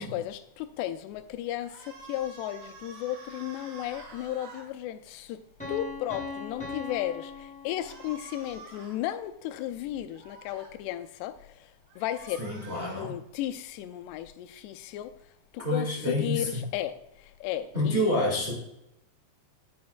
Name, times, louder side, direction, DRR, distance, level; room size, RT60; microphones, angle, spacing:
voice 1, 0.0-5.4 5.7-11.6 12.0-12.4 12.7-15.1 15.5-17.0 17.4-18.2, left 12 dB, 85° left, 2.7 m, -34 dB
sound 1, 1.6-4.7 7.8-9.0 10.1-10.7 11.9-13.1, right 4 dB, 90° right, 4.9 m, -48 dB
Piano, 5.6-8.4, left 4 dB, 5° left, 1.1 m, -39 dB
voice 2, 12.4-13.2 15.6-16.7 17.7-18.5, left 1 dB, 50° right, 0.6 m, -28 dB
9.5 x 9.3 x 2.3 m
omnidirectional pair, 4.8 m